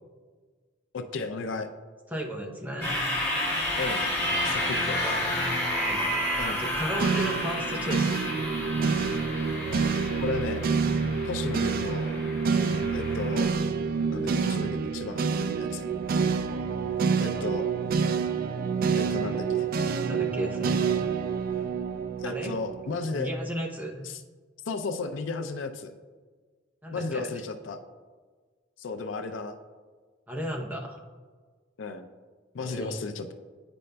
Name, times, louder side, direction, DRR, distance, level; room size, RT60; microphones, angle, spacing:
voice 1, 0.9-1.7 3.8-4.0 4.4-5.0 6.4-6.6 10.2-10.7 11.2-12.2 12.9-13.5 14.1-15.8 17.2-17.7 19.0-19.7 22.2-23.3 24.0-24.2 24.7-25.9 26.9-27.8 28.8-29.6 31.8-32.1 32.5-33.3, left 4 dB, 80° left, 8 dB, 0.5 m, -34 dB
voice 2, 2.1-3.0 4.8-5.2 5.8-6.1 6.6-8.2 12.5-12.9 20.1-20.8 22.2-22.5 23.1-24.1 26.8-27.2 30.3-31.0 32.6-33.1, right 1 dB, 10° right, 0 dB, 0.7 m, -34 dB
sound 1, 2.8-13.5, left 1 dB, 15° left, 1.6 m, -31 dB
sound 2, 7.0-23.3, right 5 dB, 50° right, 0.3 m, -28 dB
9.4 x 5.2 x 2.2 m, 1.5 s
head